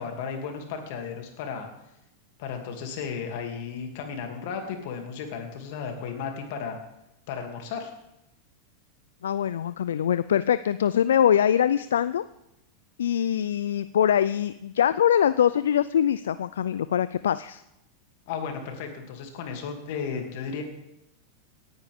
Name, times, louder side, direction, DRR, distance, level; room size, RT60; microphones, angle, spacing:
voice 1, 0.0-1.7 2.4-6.8 7.3-7.9 18.3-20.6, left 6 dB, 65° left, 4 dB, 2.6 m, -34 dB
voice 2, 9.2-12.2 13.0-17.6, left 9 dB, 85° left, 15 dB, 0.3 m, -23 dB
18.0 x 9.6 x 3.6 m, 0.86 s
hypercardioid pair, 105°, 0 cm